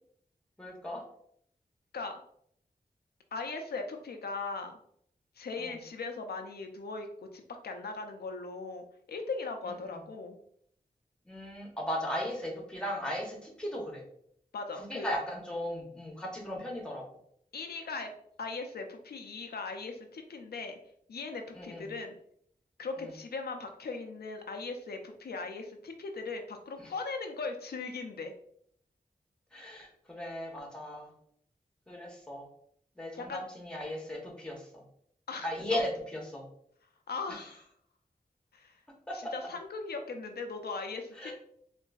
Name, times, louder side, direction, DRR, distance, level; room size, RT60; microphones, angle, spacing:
voice 1, 0.6-1.0 5.6-5.7 9.8-10.0 11.3-14.0 14.8-17.1 21.5-21.9 23.0-23.1 26.8-26.9 29.5-31.1 31.9-32.5 33.0-34.8 35.4-36.4 37.3-37.4 39.1-39.3 41.2-41.3, left 1 dB, 5° left, -1 dB, 0.9 m, -37 dB
voice 2, 3.3-4.8 5.4-7.1 7.3-8.8 9.1-10.4 14.5-15.1 17.5-18.1 18.4-20.8 21.1-22.2 22.8-28.3 33.2-33.4 35.3-35.8 37.1-37.7 38.5-38.8 39.1-41.3, left 4 dB, 85° left, 5 dB, 0.4 m, -39 dB
3.7 x 2.5 x 2.3 m, 0.67 s
wide cardioid pair, 75°, 16 cm